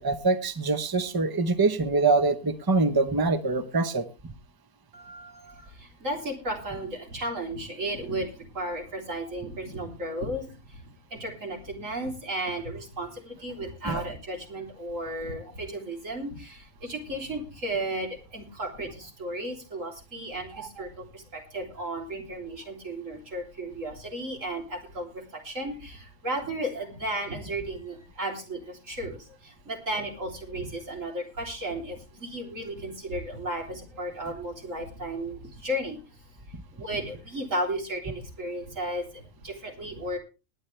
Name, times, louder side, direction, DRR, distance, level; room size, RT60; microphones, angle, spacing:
voice 1, 0.0-4.1 13.8-14.0 20.6-20.7, right 3 dB, 20° right, 10 dB, 0.9 m, -24 dB
voice 2, 4.9-10.8 11.1-36.2 36.7-40.2, right 1 dB, 70° right, 1 dB, 3.9 m, -34 dB
19.5 x 10.0 x 3.3 m, 0.30 s
omnidirectional pair, 1.4 m